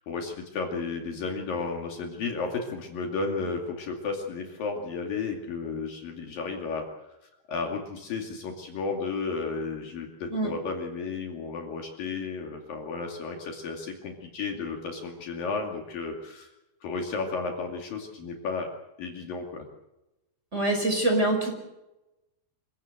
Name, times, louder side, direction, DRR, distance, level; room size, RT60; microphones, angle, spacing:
voice 1, 0.0-6.9 7.5-16.5 16.8-18.7 19.0-19.7, left 4 dB, 60° left, 2 dB, 4.0 m, -33 dB
voice 2, 20.5-21.5, right 2 dB, 15° right, 3 dB, 5.4 m, -24 dB
26.5 x 17.0 x 7.9 m, 0.96 s
omnidirectional pair, 4.9 m